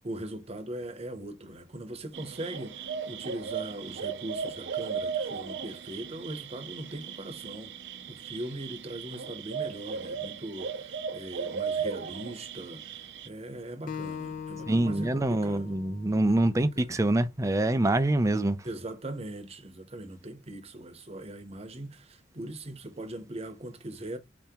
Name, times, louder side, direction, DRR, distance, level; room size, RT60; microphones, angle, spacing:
voice 1, 0.0-7.7 8.1-15.7 16.6-16.9 18.6-24.2, right 1 dB, 35° right, 0.8 m, -40 dB
sound 1, 2.1-13.3, right 6 dB, 65° right, 0.5 m, -36 dB
Acoustic guitar, 13.9-17.2, left 6 dB, 45° left, 0.5 m, -41 dB
voice 2, 14.7-18.6, right 1 dB, 15° right, 0.4 m, -25 dB
4.3 x 2.8 x 3.6 m
head